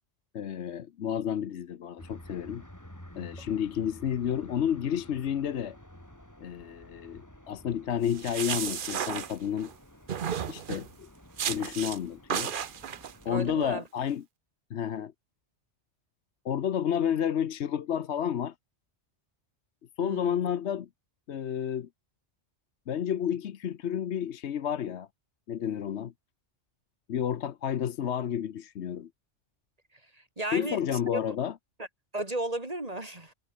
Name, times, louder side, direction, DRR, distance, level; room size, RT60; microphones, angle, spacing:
voice 1, 0.3-2.6 3.1-5.8 6.4-9.7 10.5-11.1 11.5-12.5 13.2-14.2 14.7-15.1 16.4-18.5 20.0-20.9 21.3-21.9 22.9-25.1 25.5-26.1 27.1-29.1 30.5-31.5, left 9 dB, 75° left, 1.1 m, -31 dB
sound 1, 2.0-13.8, left 1 dB, 15° left, 4.8 m, -51 dB
sound 2, 8.0-9.7 10.1-10.9 11.4-12.0 12.3-13.1, right 8 dB, 50° right, 0.9 m, -33 dB
voice 2, 13.3-13.8 20.0-20.5 30.1-31.0 31.8-31.9 32.1-33.3, right 2 dB, 35° right, 3.6 m, -35 dB
omnidirectional pair, 1.2 m